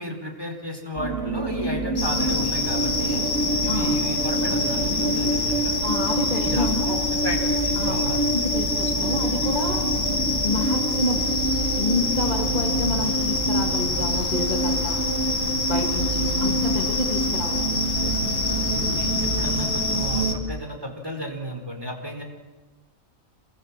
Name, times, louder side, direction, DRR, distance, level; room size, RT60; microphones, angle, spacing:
voice 1, 0.0-3.2 3.6-5.7 6.4-8.2 18.7-22.2, equal, 15° right, 2 dB, 4.6 m, -34 dB
sound 1, 1.0-20.4, right 3 dB, 50° right, 4.0 m, -28 dB
sound 2, 2.0-20.3, left 3 dB, 70° left, 3.1 m, -26 dB
voice 2, 5.8-7.0 7.8-8.0 8.3-9.8 10.4-11.2 11.8-15.0 15.6-17.7, left 2 dB, 30° left, 1 dB, 2.5 m, -29 dB
27.5 x 24.5 x 7.6 m, 1.2 s
omnidirectional pair, 1.4 m